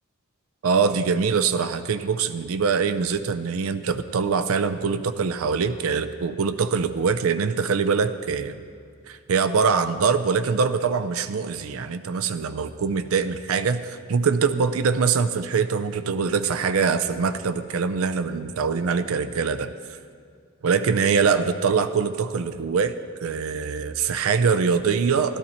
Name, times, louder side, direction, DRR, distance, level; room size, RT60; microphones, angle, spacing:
voice 1, 0.6-8.6 9.1-19.7 20.6-22.9 23.2-25.4, right 5 dB, 80° right, 11 dB, 0.5 m, -23 dB
13.5 x 12.5 x 4.3 m, 2.1 s
head